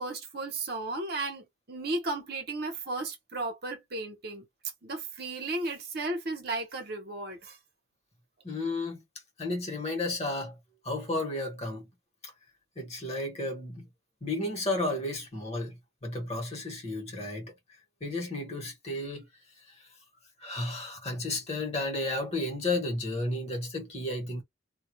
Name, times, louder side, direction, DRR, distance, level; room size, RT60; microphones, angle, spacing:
voice 1, 0.0-4.4 4.8-7.6, right 2 dB, 50° right, 1.0 m, -34 dB
voice 2, 8.4-9.0 9.4-10.6 10.8-11.9 12.2-12.3 12.8-13.9 14.2-17.5 18.0-19.3 19.7-19.9 20.4-24.4, left 2 dB, 30° left, 1.1 m, -33 dB
2.3 x 2.3 x 3.0 m
head